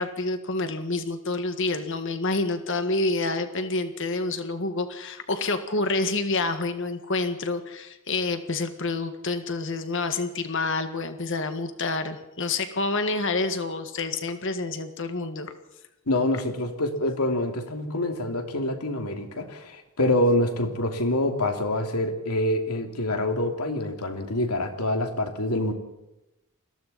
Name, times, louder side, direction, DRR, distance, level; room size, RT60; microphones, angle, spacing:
voice 1, 0.0-15.5, left 3 dB, 60° left, 8 dB, 1.8 m, -28 dB
voice 2, 16.1-25.7, left 1 dB, 90° left, 4 dB, 2.8 m, -26 dB
29.0 x 21.5 x 4.3 m, 0.95 s
head